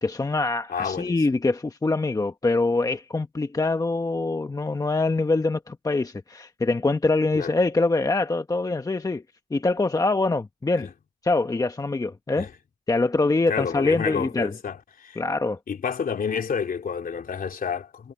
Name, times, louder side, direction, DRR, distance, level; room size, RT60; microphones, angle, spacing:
voice 1, 0.0-9.2 9.5-10.9 11.2-12.5 12.9-14.5 15.2-15.6, left 3 dB, 20° left, 1.1 m, -24 dB
voice 2, 0.7-1.2 7.3-7.5 10.8-10.9 12.4-12.5 13.5-15.2 15.7-18.1, left 6 dB, 45° left, 3.3 m, -29 dB
cardioid pair, 90°, 20 cm